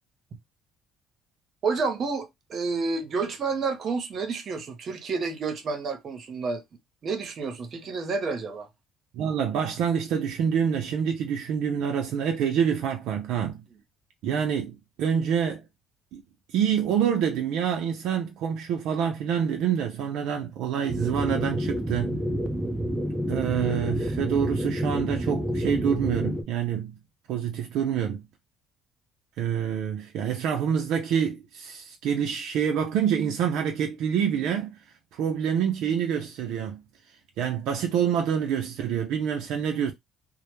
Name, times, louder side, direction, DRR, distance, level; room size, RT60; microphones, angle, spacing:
voice 1, 1.6-6.6 7.0-8.7, right 4 dB, 50° right, 0.7 m, -29 dB
voice 2, 9.1-13.6 14.2-15.6 16.1-16.2 16.5-22.2 23.3-27.0 27.3-28.2 29.4-34.7 35.1-36.8 37.4-39.9, right 8 dB, 80° right, 0.4 m, -27 dB
sound 1, 20.9-26.4, equal, 15° right, 0.4 m, -29 dB
2.1 x 2.0 x 3.0 m
cardioid pair, 100°, 0 cm